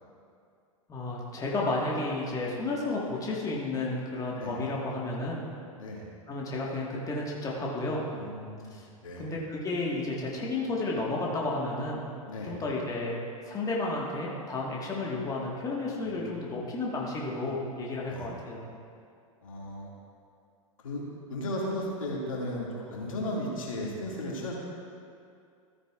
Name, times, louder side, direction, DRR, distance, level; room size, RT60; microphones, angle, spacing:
voice 1, 0.9-5.4 6.3-8.0 8.7-8.8 9.2-12.0 12.4-13.2 13.5-18.6, left 2 dB, 20° left, -3 dB, 1.6 m, -32 dB
voice 2, 5.8-6.1 8.2-8.8 9.0-9.3 12.2-12.6 16.0-16.6 18.1-18.3 19.4-19.9 20.8-21.0 21.3-24.6, left 1 dB, 70° left, -3 dB, 2.2 m, -35 dB
14.0 x 9.1 x 2.4 m, 2.3 s
figure-of-eight pair, 95°, 18 cm